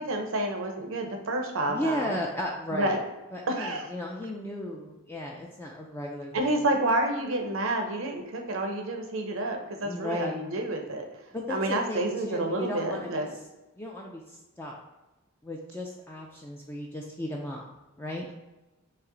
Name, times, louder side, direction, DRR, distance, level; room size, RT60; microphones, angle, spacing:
voice 1, 0.0-2.2 2.7-3.0 3.5-3.9 6.3-11.2 11.5-13.3, right 1 dB, 75° right, 3 dB, 0.6 m, -29 dB
voice 2, 1.7-3.0 3.3-6.3 9.8-10.4 11.3-13.2 13.8-14.2 14.6-14.7 15.4-17.6 18.0-18.3, left 1 dB, 10° left, -1 dB, 0.3 m, -35 dB
5.4 x 2.0 x 3.8 m, 1.1 s
head